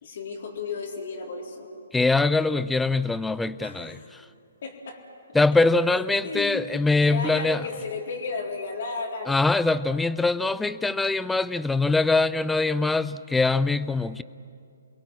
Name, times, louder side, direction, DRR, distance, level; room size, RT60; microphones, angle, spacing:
voice 1, 0.0-1.7 3.6-4.1 4.6-5.0 5.9-6.6 7.0-9.5, left 4 dB, 55° left, 0 dB, 3.8 m, -34 dB
voice 2, 1.9-4.0 5.3-7.6 9.3-14.2, left 3 dB, 5° left, 17 dB, 0.5 m, -23 dB
28.5 x 22.0 x 7.6 m, 2.5 s
figure-of-eight pair, 130°, 0 cm